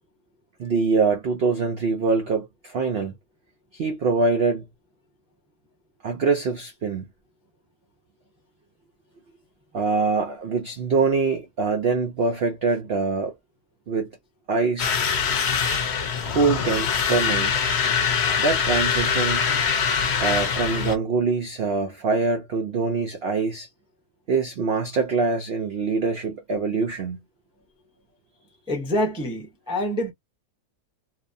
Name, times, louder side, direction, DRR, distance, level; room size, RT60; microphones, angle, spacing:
voice 1, 0.6-3.1 3.7-4.6 6.0-7.1 9.7-13.3 13.9-14.1 14.5-14.9 16.2-17.5 18.4-19.4 20.2-23.7 24.3-27.2, right 4 dB, 85° right, 0.5 m, -24 dB
sound 1, 14.8-20.9, left 6 dB, 60° left, 0.7 m, -23 dB
voice 2, 28.7-30.1, left 1 dB, 5° right, 0.5 m, -26 dB
2.8 x 2.2 x 2.5 m
omnidirectional pair, 1.8 m